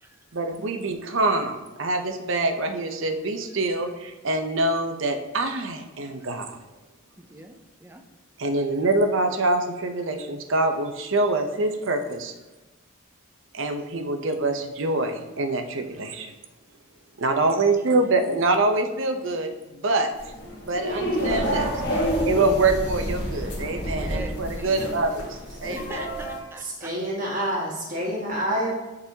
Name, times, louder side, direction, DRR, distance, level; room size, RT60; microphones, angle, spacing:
voice 1, 0.3-6.6 8.4-12.3 13.5-16.3 17.2-19.5 19.8-20.1 20.6-21.7 22.3-25.3 25.6-26.1, right 2 dB, 70° right, 6 dB, 0.7 m, -25 dB
voice 2, 7.2-8.0 17.7-17.8 21.1-22.4 24.1-24.7 25.7-26.9, right 1 dB, 10° right, 5 dB, 0.5 m, -42 dB
sound 1, 20.1-26.4, equal, 55° left, 1.5 m, -29 dB
voice 3, 26.6-28.7, equal, 40° right, -4 dB, 1.5 m, -28 dB
9.8 x 4.0 x 2.8 m, 1.1 s
head